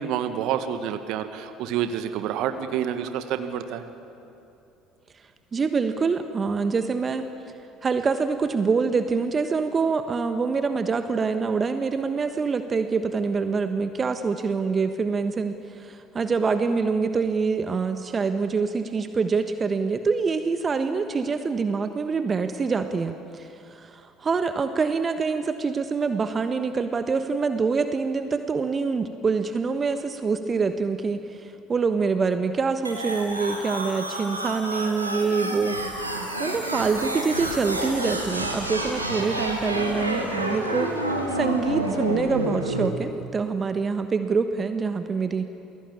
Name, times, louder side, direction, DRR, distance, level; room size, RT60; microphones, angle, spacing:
voice 1, 0.0-3.8, right 9 dB, 55° right, 9 dB, 1.7 m, -28 dB
voice 2, 5.5-7.3 7.8-40.9 41.3-45.5, right 5 dB, 30° right, 8 dB, 1.3 m, -25 dB
sound 1, 32.8-42.9, right 1 dB, 85° right, 2.4 m, -29 dB
28.5 x 21.0 x 8.7 m, 2.7 s
figure-of-eight pair, 60°, 0 cm